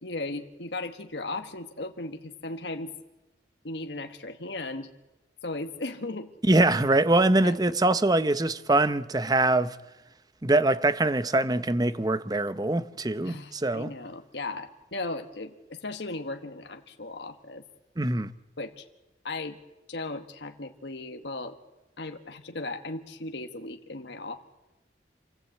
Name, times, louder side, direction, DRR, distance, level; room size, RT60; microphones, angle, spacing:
voice 1, 0.0-2.9 3.6-4.9 5.4-6.3 7.4-7.6 13.2-17.6 18.6-18.9 19.2-19.6 19.9-21.6 22.0-24.4, left 2 dB, 70° left, 1.4 m, -36 dB
voice 2, 6.5-9.8 10.4-13.9 18.0-18.3, right 2 dB, 20° right, 0.7 m, -23 dB
28.0 x 15.5 x 8.3 m
head